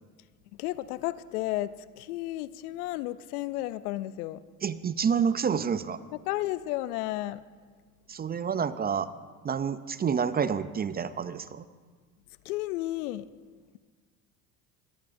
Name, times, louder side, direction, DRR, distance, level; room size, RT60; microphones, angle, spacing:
voice 1, 0.6-4.4 6.3-7.4 12.4-13.3, left 16 dB, 80° left, 17 dB, 0.6 m, -32 dB
voice 2, 4.6-6.0 8.1-9.1 9.4-11.6, right 7 dB, 20° right, 15 dB, 0.4 m, -28 dB
21.0 x 14.0 x 2.6 m, 1.5 s
hypercardioid pair, 75°, 44 cm